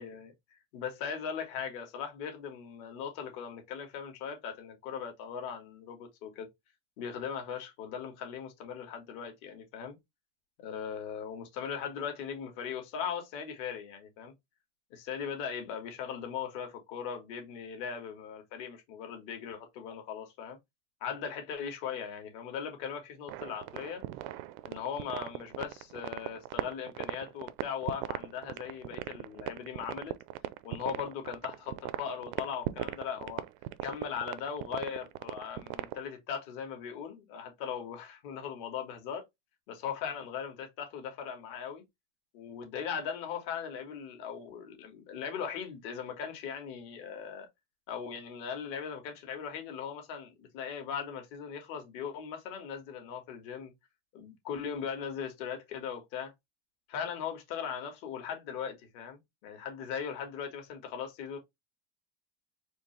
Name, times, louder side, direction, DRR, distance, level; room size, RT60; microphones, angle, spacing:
voice 1, 0.0-6.5 7.0-10.0 10.6-14.3 14.9-20.6 21.0-24.0 24.6-30.1 30.6-33.4 33.8-39.2 39.7-41.8 42.3-47.5 47.9-53.7 54.1-56.3 56.9-61.4, left 7 dB, 60° left, 1.8 m, -39 dB
sound 1, 23.3-36.1, right 16 dB, 75° right, 0.6 m, -38 dB
4.4 x 2.8 x 3.2 m
cardioid pair, 160°, 35 cm